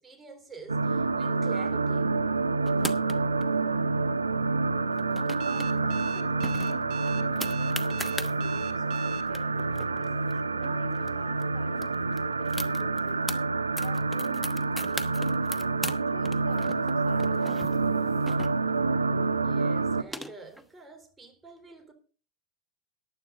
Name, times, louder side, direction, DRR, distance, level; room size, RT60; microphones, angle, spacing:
voice 1, 0.0-2.1 19.4-21.9, right 3 dB, 15° right, 3.6 m, -47 dB
sound 1, 0.7-20.0, right 3 dB, 90° right, 0.7 m, -28 dB
sound 2, 2.7-3.4 4.9-5.7 6.0-6.1 6.4-8.3 9.0-9.1 9.3-11.1 11.4-11.5 11.8-13.4 13.8-16.0 16.3-18.9 19.7-20.6, left 1 dB, ahead, 1.1 m, -38 dB
voice 2, 5.4-10.2 10.5-13.4 13.8-15.4 15.8-18.2, left 5 dB, 40° left, 3.6 m, -49 dB
Alarm, 5.4-9.2, right 13 dB, 45° right, 1.8 m, -44 dB
14.5 x 11.0 x 3.8 m
hypercardioid pair, 90°, 0 cm